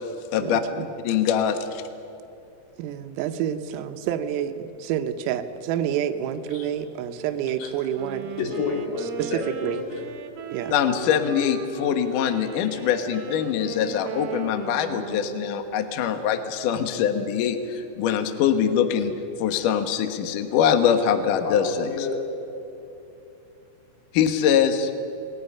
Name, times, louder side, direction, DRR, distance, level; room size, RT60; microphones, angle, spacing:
voice 1, 0.4-0.9 2.8-8.3 9.2-9.8 10.5-10.8, right 10 dB, 85° right, 3.6 m, -28 dB
voice 2, 1.0-1.8 10.7-19.1 19.4-22.1 24.1-24.9, left 8 dB, 85° left, 1.8 m, -23 dB
Wind instrument woodwind instrument, 7.9-16.0, right 5 dB, 60° right, 3.4 m, -36 dB
voice 3, 8.4-10.0 21.4-22.4, left 4 dB, 60° left, 4.6 m, -30 dB
28.0 x 21.0 x 5.6 m
omnidirectional pair, 5.9 m